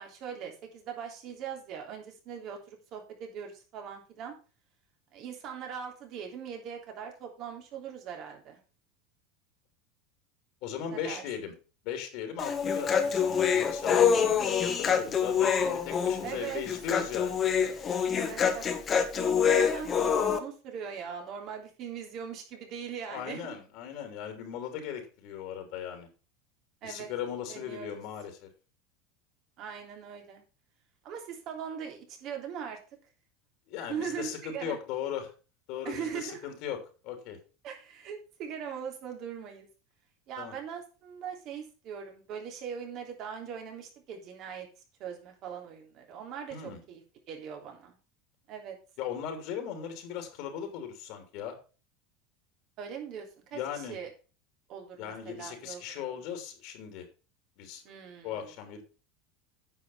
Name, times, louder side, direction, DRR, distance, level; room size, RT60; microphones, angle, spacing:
voice 1, 0.0-4.3 5.1-8.6 10.9-11.2 16.2-16.6 18.1-18.7 19.0-23.6 26.8-27.1 27.5-28.0 29.6-30.4 31.0-32.8 33.9-34.8 35.8-36.4 37.6-39.7 40.3-44.7 45.0-47.0 47.3-48.0 48.5-48.8 52.8-54.1 54.7-56.1 57.8-58.5, right 7 dB, 50° right, 2 dB, 3.4 m, -40 dB
voice 2, 10.6-11.5 11.8-17.4 23.1-26.1 26.8-28.5 33.7-35.3 35.7-36.8 37.0-37.4 40.4-40.5 46.5-46.8 49.0-51.6 53.5-54.0 55.0-57.1 57.6-57.8 58.2-58.8, left 8 dB, 60° left, 6 dB, 3.0 m, -38 dB
Human voice, 12.4-20.4, left 7 dB, 30° left, 1.5 m, -26 dB
9.5 x 5.8 x 5.6 m, 0.34 s
supercardioid pair, 115°, 0 cm